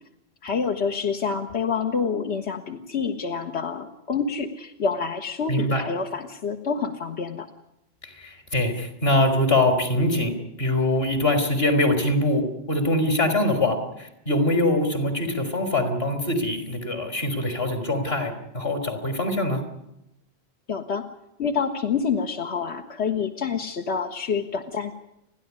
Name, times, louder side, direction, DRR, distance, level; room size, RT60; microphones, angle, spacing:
voice 1, 0.4-7.5 20.7-21.0 21.4-24.9, left 5 dB, 80° left, 4 dB, 1.5 m, -27 dB
voice 2, 5.5-5.8 8.0-10.3 10.6-19.6, left 1 dB, 65° left, 8 dB, 4.0 m, -23 dB
30.0 x 11.0 x 9.6 m, 0.84 s
omnidirectional pair, 1.1 m